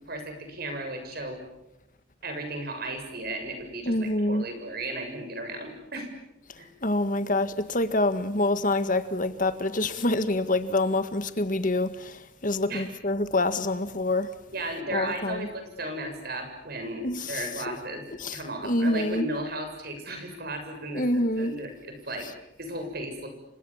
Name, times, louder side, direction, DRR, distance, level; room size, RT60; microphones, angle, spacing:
voice 1, 0.0-1.4 2.2-6.1 6.6-6.7 12.7-12.9 14.5-18.0 18.3-22.3 22.6-23.3, right 1 dB, 50° right, 7.1 m, -35 dB
voice 2, 3.9-4.5 6.8-14.3 14.9-15.5 17.0-17.4 17.7-17.8 18.2-19.3 21.0-21.5, left 2 dB, 45° left, 1.8 m, -26 dB
29.0 x 25.5 x 7.4 m
head